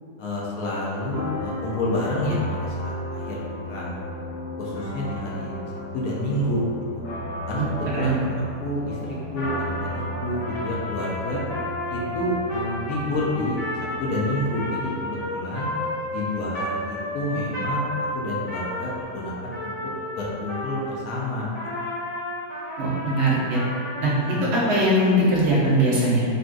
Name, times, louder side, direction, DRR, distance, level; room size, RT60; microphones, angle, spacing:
voice 1, 0.2-3.4 3.7-3.9 4.6-6.6 6.9-7.0 7.5-8.2 8.6-11.4 11.9-15.7 16.1-19.8 20.1-21.5 24.1-24.4, left 1 dB, 70° left, -5 dB, 1.0 m, -29 dB
sound 1, 1.1-17.6, left 1 dB, 85° left, 0.5 m, -35 dB
Trumpet, 9.3-21.0 21.5-24.5, left 1 dB, 40° left, 0.6 m, -32 dB
voice 2, 22.8-23.6 24.0-26.2, right 1 dB, 55° right, -7 dB, 0.9 m, -21 dB
3.8 x 2.3 x 2.4 m, 2.3 s
omnidirectional pair, 1.8 m